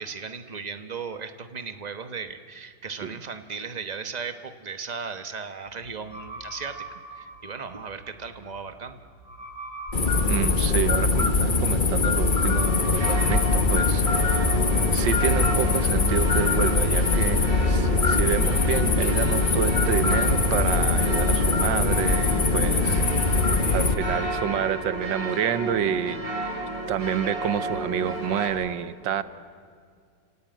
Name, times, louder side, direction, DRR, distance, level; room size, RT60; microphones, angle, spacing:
voice 1, 0.0-9.0, right 5 dB, 30° right, 9 dB, 1.0 m, -36 dB
sound 1, 5.7-15.1, right 1 dB, 5° right, 7.1 m, -42 dB
sound 2, 9.9-23.9, left 3 dB, 30° left, 1.2 m, -22 dB
voice 2, 10.3-14.6 14.9-23.0 23.4-26.5 26.9-29.2, right 9 dB, 85° right, 14 dB, 1.6 m, -29 dB
sound 3, 12.6-28.5, right 1 dB, 45° right, 5.1 m, -32 dB
29.5 x 17.0 x 9.1 m, 2.1 s
omnidirectional pair, 2.0 m